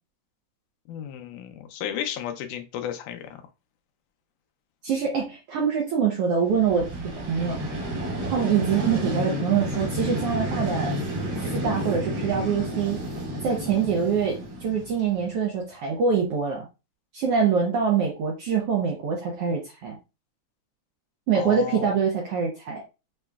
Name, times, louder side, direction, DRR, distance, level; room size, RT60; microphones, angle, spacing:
voice 1, 0.9-3.4 21.3-21.9, left 10 dB, 90° left, 6 dB, 2.2 m, -33 dB
voice 2, 4.8-7.6 8.3-10.9 11.5-13.0 13.4-16.7 17.1-19.9 21.3-22.8, right 6 dB, 70° right, -1 dB, 1.5 m, -24 dB
Vehicle, 6.5-15.4, equal, 45° right, 1.4 m, -31 dB
6.6 x 3.0 x 2.3 m, 0.28 s
omnidirectional pair, 3.5 m